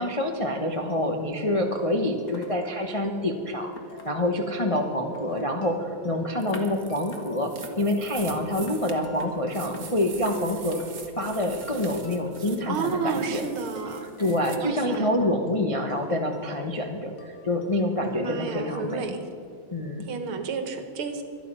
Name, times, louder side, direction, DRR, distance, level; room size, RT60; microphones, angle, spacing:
voice 1, 0.0-3.7 4.0-7.5 7.8-10.8 11.2-13.4 14.0-19.0 19.7-20.1, left 1 dB, 35° left, 3 dB, 0.5 m, -27 dB
sound 1, 0.8-19.0, equal, 80° left, 2.6 m, -48 dB
sound 2, 2.1-2.6 2.9-3.0 3.7-4.4 5.1-5.5 6.5-6.6 7.1-7.2 7.6-7.8 8.1-8.3 8.7-8.8 9.2-9.3 9.7-9.8 10.2-10.4 10.8-10.9 11.3-11.4 11.8-11.9 12.3-12.4 12.9-13.0 13.8-14.0 14.9-15.0, left 4 dB, 50° left, 2.2 m, -45 dB
sound 3, 6.4-14.6, right 6 dB, 45° right, 1.6 m, -44 dB
voice 2, 12.7-14.0 14.6-15.1 18.1-19.2 20.0-21.2, right 5 dB, 80° right, 7 dB, 2.2 m, -31 dB
24.0 x 9.3 x 5.5 m, 2.7 s
omnidirectional pair, 2.3 m